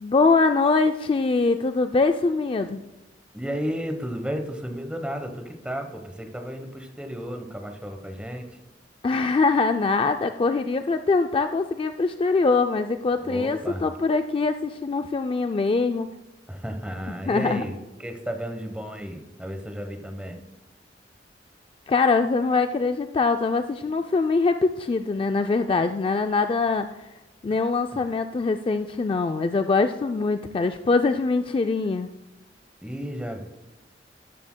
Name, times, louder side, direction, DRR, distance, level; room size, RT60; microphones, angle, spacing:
voice 1, 0.0-2.8 9.0-16.1 17.3-17.6 21.9-26.9 27.4-32.1, left 4 dB, 30° left, 7 dB, 0.3 m, -23 dB
voice 2, 3.3-8.5 13.2-13.8 16.5-20.4 27.5-27.6 32.8-33.4, equal, 5° right, 5 dB, 1.0 m, -33 dB
12.5 x 11.0 x 2.2 m, 0.98 s
head